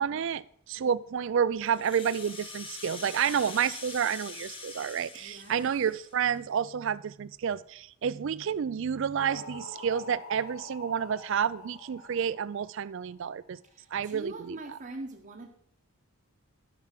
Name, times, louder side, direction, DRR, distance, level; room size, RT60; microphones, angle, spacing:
voice 1, 0.0-13.6 13.9-14.6, right 7 dB, 55° right, 18 dB, 0.3 m, -30 dB
Rattle (instrument), 1.7-6.4, left 4 dB, 25° left, 1.1 m, -44 dB
voice 2, 5.1-5.8 13.6-15.5, right 2 dB, 35° right, 0 dB, 0.9 m, -43 dB
sound 1, 9.2-13.4, left 2 dB, 75° left, 2.1 m, -46 dB
11.0 x 6.0 x 5.9 m, 0.68 s
head